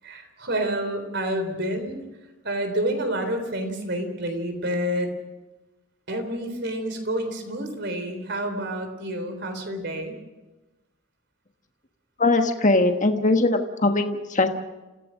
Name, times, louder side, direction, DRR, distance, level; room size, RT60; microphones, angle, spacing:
voice 1, 0.0-2.0 2.4-5.1 6.1-10.2, right 1 dB, 55° right, 7 dB, 3.7 m, -28 dB
voice 2, 12.2-14.5, left 2 dB, 35° left, 5 dB, 1.3 m, -21 dB
28.5 x 16.0 x 6.4 m, 1.1 s
head